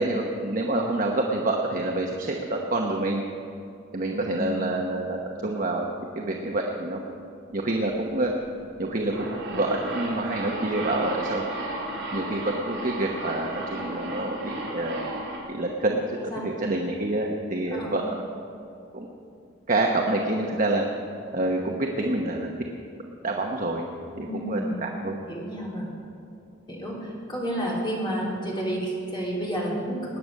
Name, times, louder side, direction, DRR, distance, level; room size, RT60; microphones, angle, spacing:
voice 1, 0.0-3.3 3.9-7.0 7.5-8.3 8.8-11.5 12.1-15.1 15.5-18.1 18.9-19.1 19.7-20.8 21.3-22.5 23.2-23.8 24.2-25.2, right 2 dB, 40° right, 0 dB, 1.0 m, -27 dB
voice 2, 4.0-4.7 16.2-16.5 17.7-17.9 24.1-24.9 25.3-25.9 26.7-30.2, equal, 25° left, -4 dB, 3.5 m, -31 dB
sound 1, 8.8-15.4, right 1 dB, 60° right, 3.6 m, -34 dB
20.0 x 9.6 x 6.5 m, 2.7 s
head